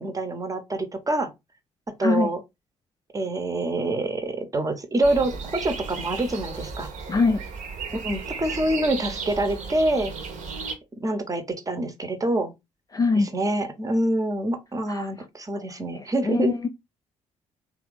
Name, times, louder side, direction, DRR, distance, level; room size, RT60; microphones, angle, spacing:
voice 1, 0.0-1.3 2.0-2.4 3.1-6.9 7.9-10.1 11.0-12.5 13.1-16.5, right 1 dB, 20° right, 0.7 m, -26 dB
sound 1, 5.0-10.7, right 5 dB, 50° right, 0.8 m, -35 dB
voice 2, 7.1-7.4 12.9-13.3 14.9-15.1 15.9-16.7, left 4 dB, 20° left, 0.3 m, -23 dB
3.2 x 2.4 x 3.1 m
figure-of-eight pair, 45°, 16 cm